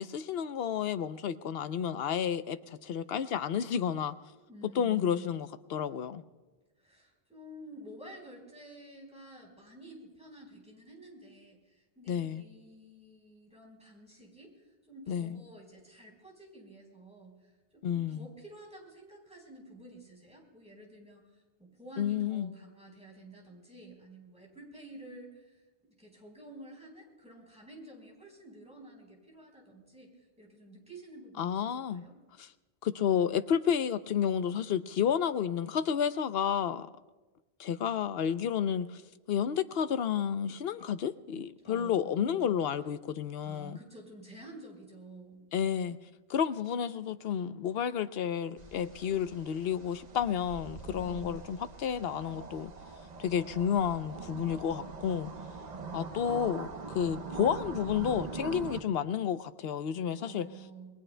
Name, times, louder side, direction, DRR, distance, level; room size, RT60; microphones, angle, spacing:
voice 1, 0.0-4.1 4.8-6.2 12.1-12.4 15.1-15.4 17.8-18.2 22.0-22.5 31.4-32.0 32.8-36.9 37.6-39.0 39.3-43.8 45.5-46.0 46.3-52.7 53.2-55.3 55.9-60.5, left 8 dB, 75° left, 12 dB, 0.9 m, -31 dB
voice 2, 4.5-5.3 6.8-25.6 26.0-32.1 41.6-42.6 43.4-45.4 50.9-51.4 60.1-60.9, right 1 dB, 5° right, -1 dB, 4.2 m, -51 dB
sound 1, 48.6-58.8, right 4 dB, 45° right, 1.0 m, -43 dB
28.0 x 21.0 x 2.2 m, 1.2 s
omnidirectional pair, 1.0 m